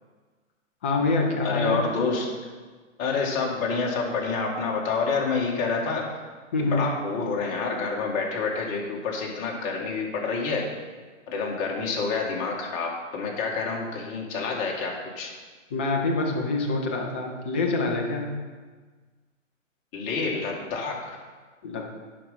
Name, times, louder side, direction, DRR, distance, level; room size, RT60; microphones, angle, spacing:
voice 1, 0.8-1.8 6.5-6.8 15.7-18.3 21.6-21.9, left 3 dB, 10° left, 0 dB, 0.3 m, -26 dB
voice 2, 1.4-2.3 3.0-6.1 6.6-10.7 11.3-15.3 19.9-21.2, left 4 dB, 30° left, -1 dB, 2.0 m, -28 dB
10.5 x 5.2 x 5.7 m, 1.4 s
hypercardioid pair, 130°, 39 cm